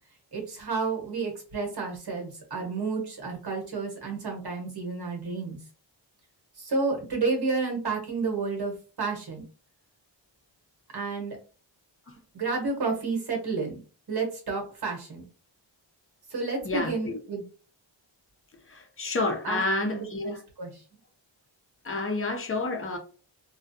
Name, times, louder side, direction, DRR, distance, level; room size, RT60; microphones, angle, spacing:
voice 1, 0.3-5.6 6.6-9.4 10.9-11.4 12.3-13.8 14.1-15.2 16.3-17.4 19.4-20.7, right 4 dB, 55° right, 1.1 m, -31 dB
voice 2, 16.6-17.2 18.7-20.4 21.8-23.0, left 2 dB, 30° left, 0.6 m, -29 dB
2.3 x 2.3 x 2.6 m
wide cardioid pair, 100°, 47 cm